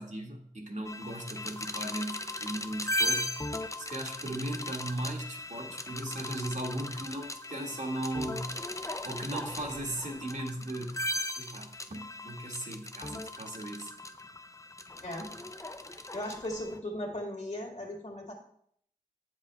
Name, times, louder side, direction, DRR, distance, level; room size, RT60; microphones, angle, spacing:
voice 1, 0.0-3.4 3.8-8.5 9.0-11.1 11.4-13.9, right 1 dB, 60° right, 2 dB, 1.6 m, -37 dB
sound 1, 0.8-16.8, left 1 dB, 20° left, 0.6 m, -38 dB
voice 2, 16.1-18.3, left 1 dB, 55° left, 1 dB, 2.3 m, -37 dB
9.2 x 7.4 x 3.4 m, 0.65 s
wide cardioid pair, 60°, 14 cm